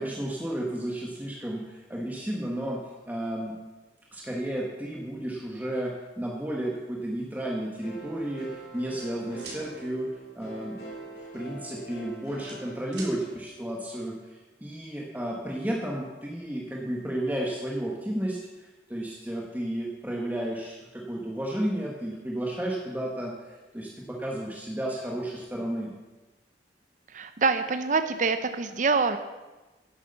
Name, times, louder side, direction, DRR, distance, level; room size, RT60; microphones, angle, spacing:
voice 1, 0.0-3.6 4.1-10.8 11.3-25.9, right 1 dB, 10° right, -2 dB, 1.3 m, -33 dB
sound 1, 7.8-13.7, right 2 dB, 60° left, 4.5 m, -44 dB
sound 2, 9.0-9.6 11.3-11.5 11.9-13.1, right 3 dB, 70° right, 3.6 m, -43 dB
voice 2, 27.1-29.2, right 4 dB, 45° right, 9 dB, 0.6 m, -25 dB
10.5 x 8.4 x 6.8 m, 1.1 s
head